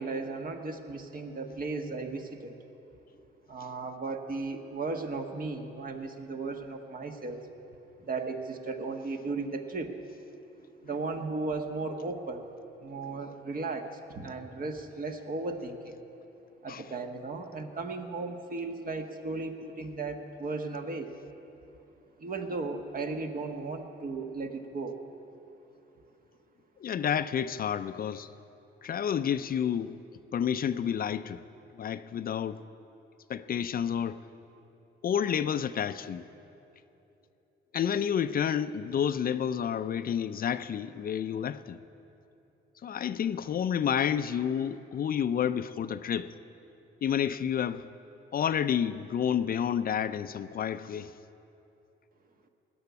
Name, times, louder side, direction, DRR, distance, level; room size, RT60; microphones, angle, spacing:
voice 1, 0.0-2.6 3.5-7.5 8.0-9.9 10.8-12.5 12.8-16.0 16.6-21.2 22.2-25.0, right 3 dB, 45° right, 1.4 m, -36 dB
voice 2, 26.8-28.3 28.8-30.0 30.3-31.4 31.8-32.6 33.3-34.2 35.0-36.3 37.7-41.8 42.8-46.3 47.0-47.9 48.3-51.1, left 8 dB, 45° left, 0.5 m, -30 dB
18.5 x 7.0 x 9.6 m
cardioid pair, 90°, 20 cm